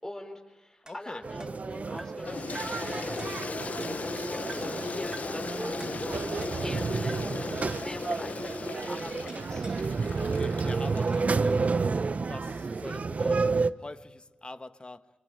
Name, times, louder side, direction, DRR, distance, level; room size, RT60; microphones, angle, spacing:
voice 1, 0.0-3.7 4.0-6.2 6.6-9.8, left 1 dB, 20° left, 4.5 m, -43 dB
voice 2, 0.8-1.2 10.2-11.8 12.1-13.5 13.8-15.1, left 2 dB, 35° left, 1.4 m, -44 dB
sound 1, 0.9-2.3 2.5-2.9 3.2-4.2 4.5-4.8 5.1-5.4 5.8-6.8 7.1-7.4 7.7-8.0 9.3-9.9 10.2-11.6, right 2 dB, 30° right, 2.8 m, -50 dB
sound 2, 1.2-13.7, right 4 dB, 55° right, 0.8 m, -31 dB
Toilet flush, 2.2-11.6, left 4 dB, 60° left, 1.1 m, -37 dB
24.5 x 24.0 x 9.3 m
cardioid pair, 40°, 3 cm